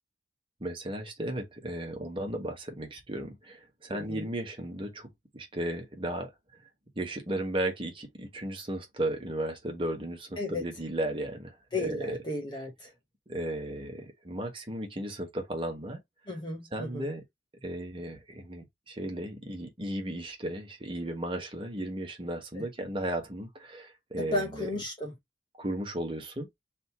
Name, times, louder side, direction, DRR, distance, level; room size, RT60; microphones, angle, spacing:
voice 1, 0.6-6.6 7.0-12.2 13.3-16.0 16.7-17.2 17.6-24.7 25.6-26.5, right 1 dB, 30° right, 1.2 m, -35 dB
voice 2, 3.9-4.3 10.4-10.6 11.7-12.9 16.3-17.1 22.5-22.6 24.2-25.1, left 2 dB, 25° left, 1.0 m, -34 dB
3.5 x 2.6 x 4.6 m
head